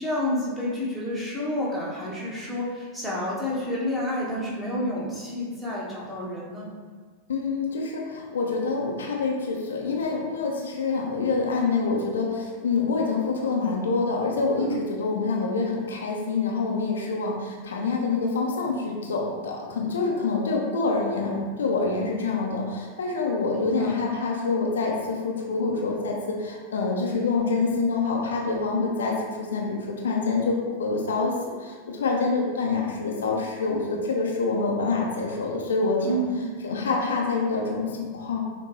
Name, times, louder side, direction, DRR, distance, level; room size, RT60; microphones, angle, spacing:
voice 1, 0.0-6.7 14.6-14.8 23.5-24.0 36.0-36.6, left 1 dB, 5° right, -7 dB, 1.2 m, -29 dB
voice 2, 7.3-36.2 36.6-38.4, left 4 dB, 65° left, -1 dB, 0.5 m, -26 dB
6.0 x 2.2 x 3.0 m, 1.5 s
figure-of-eight pair, 90°, 0 cm